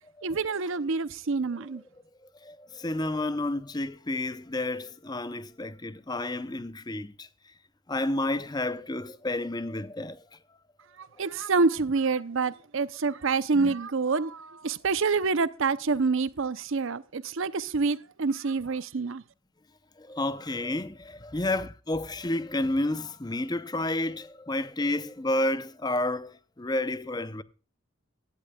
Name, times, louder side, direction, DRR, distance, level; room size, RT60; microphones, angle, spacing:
voice 1, 0.2-1.8 11.0-19.2, right 4 dB, 60° right, 0.6 m, -27 dB
voice 2, 2.4-7.3 7.9-10.4 13.5-13.7 20.0-27.4, left 1 dB, 20° left, 0.6 m, -31 dB
17.0 x 12.0 x 2.3 m
head